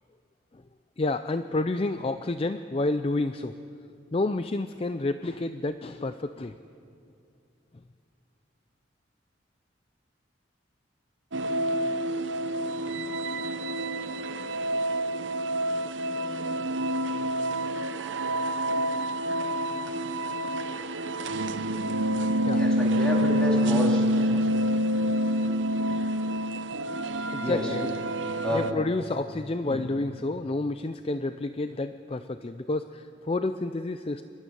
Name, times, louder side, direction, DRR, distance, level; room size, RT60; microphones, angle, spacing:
voice 1, 1.0-3.5 4.1-6.5 22.2-22.9 24.3-24.5 25.4-25.6 25.9-26.1 27.1-27.9 28.5-34.2, left 2 dB, 30° left, 10 dB, 0.4 m, -30 dB
sound 1, 11.3-28.7, right 1 dB, 70° right, 0.8 m, -27 dB
voice 2, 22.5-24.4 27.4-27.7 28.4-28.7 29.6-29.8, left 1 dB, 5° left, -2 dB, 3.2 m, -30 dB
23.5 x 12.5 x 10.0 m, 2.6 s
head